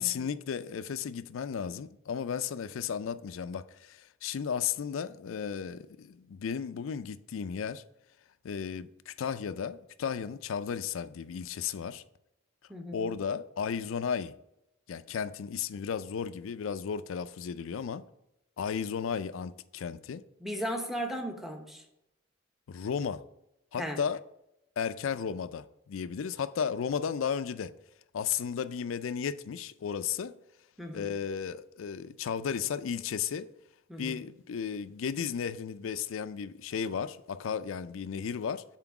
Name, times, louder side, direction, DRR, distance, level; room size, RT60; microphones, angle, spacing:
voice 1, 0.0-7.8 8.4-12.0 12.9-14.3 14.9-18.0 18.6-20.2 22.7-23.2 23.7-24.2 24.8-27.7 28.1-30.3 30.9-33.5 34.0-38.6, left 7 dB, 75° left, 0.4 m, -34 dB
voice 2, 12.7-13.1 20.4-21.8 23.8-24.0 30.8-31.1 33.9-34.2, equal, ahead, 0.8 m, -36 dB
5.9 x 4.4 x 6.0 m
head